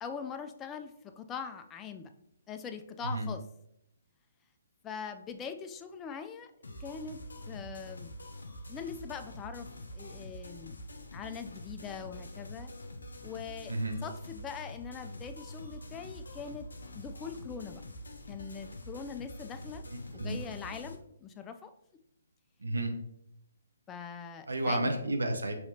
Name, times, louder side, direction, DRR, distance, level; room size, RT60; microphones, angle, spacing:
voice 1, 0.0-2.1 2.5-3.4 4.8-6.5 6.8-7.2 7.5-8.1 8.7-9.7 9.9-10.8 11.1-12.7 13.2-13.7 14.0-16.7 16.9-17.8 18.3-19.8 20.1-21.7 23.9-25.0, left 6 dB, 15° left, 7 dB, 0.3 m, -42 dB
sound 1, 6.6-20.9, left 1 dB, 85° left, 0.6 m, -45 dB
voice 2, 13.7-14.0 19.9-20.4 22.6-22.9 24.5-25.5, right 1 dB, 90° right, 4 dB, 0.7 m, -31 dB
5.6 x 2.9 x 2.7 m, 0.78 s
hypercardioid pair, 145°, 0 cm